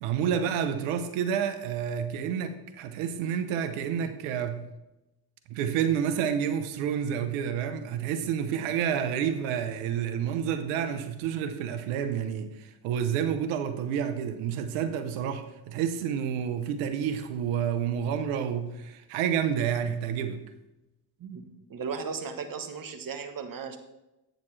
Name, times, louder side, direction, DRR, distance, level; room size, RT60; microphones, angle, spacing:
voice 1, 0.0-4.7 5.5-20.4, right 8 dB, 85° right, 10 dB, 0.9 m, -29 dB
voice 2, 21.2-23.8, right 5 dB, 40° right, 7 dB, 1.2 m, -36 dB
8.6 x 6.7 x 3.3 m, 0.95 s
supercardioid pair, 70°, 49 cm